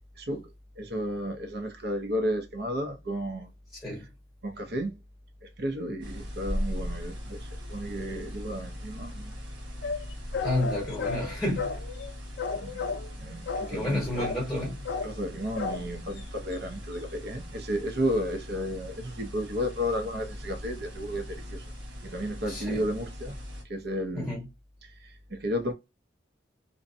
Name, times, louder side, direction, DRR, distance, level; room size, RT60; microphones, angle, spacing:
voice 1, 0.2-0.5 0.8-3.5 4.4-4.9 5.4-9.3 12.5-12.9 13.2-14.3 15.0-21.7 22.0-23.3 23.7-24.3 24.8-25.7, equal, 60° right, 0.7 m, -33 dB
sound 1, 6.0-23.6, left 1 dB, 80° right, 1.1 m, -39 dB
sound 2, 9.8-12.1 12.4-13.2 13.5-13.9 14.2-14.6 14.8-15.2 15.6-15.9 16.2-16.3 16.5-16.6, left 4 dB, 75° left, 0.4 m, -33 dB
voice 2, 10.4-11.8 13.7-14.8 22.5-22.8 24.1-24.4, left 1 dB, ahead, 1.1 m, -30 dB
2.6 x 2.1 x 2.5 m
head